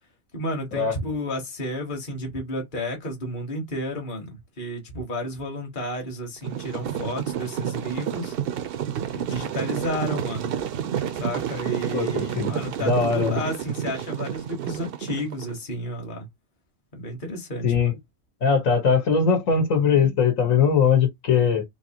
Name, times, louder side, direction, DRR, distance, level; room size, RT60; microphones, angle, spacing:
voice 1, 0.3-8.4 9.1-10.6 11.2-16.3 16.9-17.9, equal, 40° left, 1.4 m, -32 dB
sound 1, 6.4-15.5, right 9 dB, 60° right, 0.6 m, -30 dB
voice 2, 11.9-12.5 12.8-13.4 17.6-17.9 18.4-21.6, left 6 dB, 70° left, 1.6 m, -20 dB
4.0 x 2.8 x 2.8 m
omnidirectional pair, 1.4 m